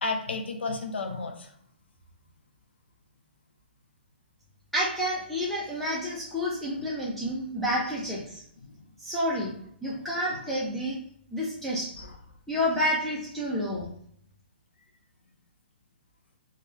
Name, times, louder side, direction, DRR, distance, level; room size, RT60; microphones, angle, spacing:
voice 1, 0.0-1.5 6.8-6.9 7.3-7.4 7.7-7.8 8.1-8.2 9.9-10.0 10.3-10.4 12.0-12.2, left 3 dB, 85° left, 4 dB, 0.5 m, -33 dB
voice 2, 4.7-8.4 9.0-9.5 9.8-11.0 11.3-11.9 12.5-13.9, equal, ahead, -7 dB, 0.3 m, -29 dB
3.0 x 2.1 x 2.3 m, 0.66 s
hypercardioid pair, 155°, 6 cm